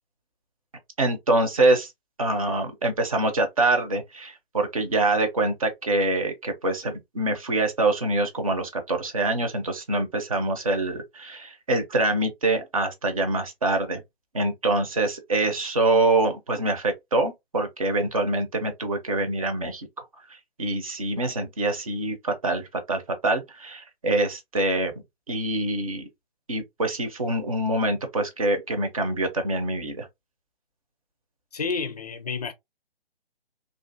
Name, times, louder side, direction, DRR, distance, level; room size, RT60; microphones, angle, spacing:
voice 1, 1.0-1.9 2.2-14.0 14.3-19.9 20.3-24.9 25.3-26.1 26.5-30.1, right 2 dB, 35° right, 0.5 m, -25 dB
voice 2, 31.5-32.5, left 5 dB, 40° left, 0.5 m, -30 dB
2.5 x 2.3 x 2.4 m
figure-of-eight pair, 140°, 31 cm